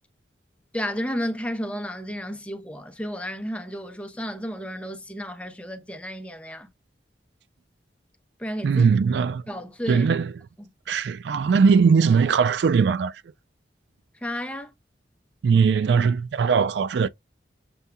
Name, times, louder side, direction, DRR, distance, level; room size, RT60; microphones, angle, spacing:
voice 1, 0.7-6.7 8.4-8.8 9.5-10.1 10.6-10.7 14.2-14.7, equal, 5° left, 0.8 m, -32 dB
voice 2, 8.6-9.4 9.9-10.3 10.9-13.1 15.4-17.1, right 5 dB, 80° right, 0.3 m, -20 dB
6.8 x 2.6 x 2.3 m
head